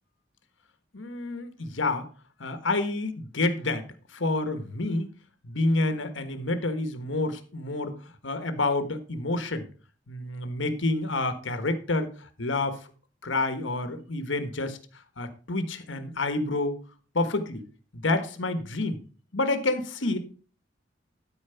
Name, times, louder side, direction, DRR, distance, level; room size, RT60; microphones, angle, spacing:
voice 1, 0.9-2.1 2.4-3.8 4.1-5.1 5.4-8.0 8.2-9.7 10.1-12.8 13.2-14.8 15.2-16.8 17.1-17.6 17.9-19.0 19.3-20.2, left 2 dB, 75° left, 10 dB, 1.3 m, -28 dB
12.5 x 4.5 x 5.7 m, 0.40 s
head